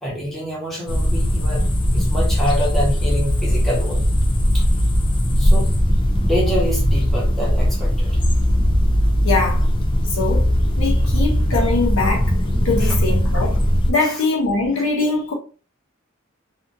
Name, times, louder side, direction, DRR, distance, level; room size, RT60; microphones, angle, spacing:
voice 1, 0.0-4.1 4.5-4.6 5.4-5.7 6.2-8.2 12.8-12.9 14.0-14.2, equal, ahead, 1.0 m, -26 dB
sound 1, 0.9-13.9, equal, 25° left, 0.4 m, -18 dB
voice 2, 9.2-9.7 10.1-10.5 10.8-12.3 12.6-15.3, left 3 dB, 70° left, 0.8 m, -22 dB
2.7 x 2.5 x 2.5 m
head